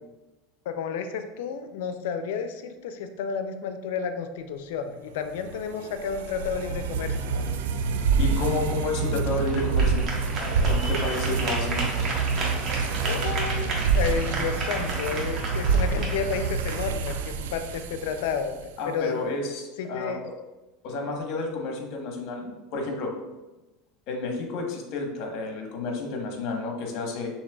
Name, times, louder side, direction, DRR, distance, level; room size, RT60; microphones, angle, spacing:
voice 1, 0.7-7.5 13.1-19.2 19.8-20.2, left 6 dB, 80° left, 8 dB, 0.5 m, -31 dB
sound 1, 5.3-18.7, right 5 dB, 90° right, 0.4 m, -27 dB
sound 2, 8.1-18.0, right 2 dB, 40° right, 1.2 m, -34 dB
voice 2, 8.2-10.0 10.6-11.8 18.8-20.3 20.8-23.1 24.1-27.3, left 3 dB, 55° left, 2 dB, 1.1 m, -31 dB
6.2 x 3.3 x 2.3 m, 1.1 s
supercardioid pair, 120°, 0 cm